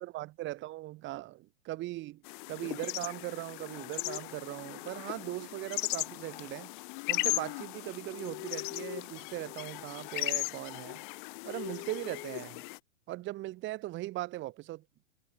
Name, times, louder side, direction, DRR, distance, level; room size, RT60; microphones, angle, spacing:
voice 1, 0.0-2.2 2.5-6.7 7.1-11.0 11.4-12.6 13.1-14.8, right 17 dB, 30° right, 4.0 m, -39 dB
sound 1, 2.2-12.8, left 26 dB, 45° left, 1.5 m, -37 dB
hypercardioid pair, 120°, 36 cm